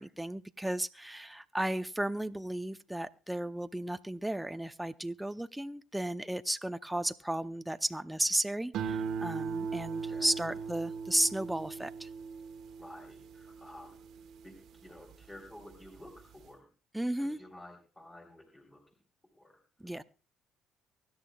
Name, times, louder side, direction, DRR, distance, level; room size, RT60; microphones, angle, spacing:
voice 1, 0.0-12.1 16.9-17.4 19.8-20.0, right 1 dB, 5° right, 10 dB, 0.7 m, -34 dB
sound 1, 8.7-15.3 15.7-16.2, right 6 dB, 65° right, 1.2 m, -39 dB
voice 2, 10.1-10.5 12.8-14.0 14.4-14.6 14.8-16.7 17.0-18.8 19.3-19.6, left 1 dB, 20° left, 3 dB, 3.4 m, -52 dB
23.5 x 11.5 x 2.3 m, 0.35 s
hypercardioid pair, 60°, 0 cm